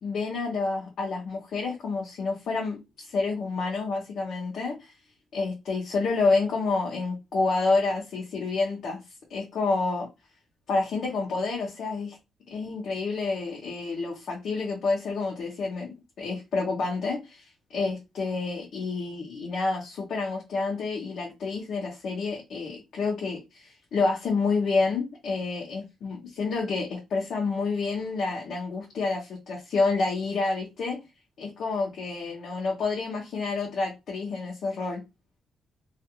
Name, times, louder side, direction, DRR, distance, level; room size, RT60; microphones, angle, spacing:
voice 1, 0.0-4.9 5.3-9.0 9.3-10.1 10.7-12.2 12.5-31.0 31.4-35.0, left 3 dB, 65° left, 0.7 m, -29 dB
2.4 x 2.4 x 2.8 m
cardioid pair, 135°, 0 cm